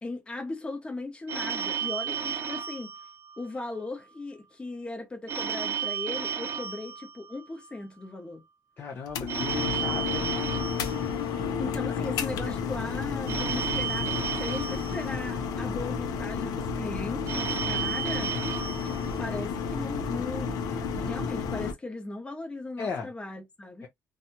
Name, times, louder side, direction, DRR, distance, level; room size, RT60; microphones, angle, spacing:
voice 1, 0.0-2.9 3.4-8.4 11.6-18.3 18.8-23.9, left 2 dB, 15° left, 0.9 m, -38 dB
Telephone, 1.3-3.8 5.3-7.8 9.3-11.8 13.3-15.8 17.3-19.8, right 7 dB, 45° right, 0.6 m, -33 dB
voice 2, 8.8-10.4 22.8-23.1 23.8-23.9, left 5 dB, 35° left, 0.5 m, -36 dB
sound 1, 9.1-21.7, left 6 dB, 80° left, 0.6 m, -31 dB
2.8 x 2.3 x 2.7 m
cardioid pair, 155°, 6 cm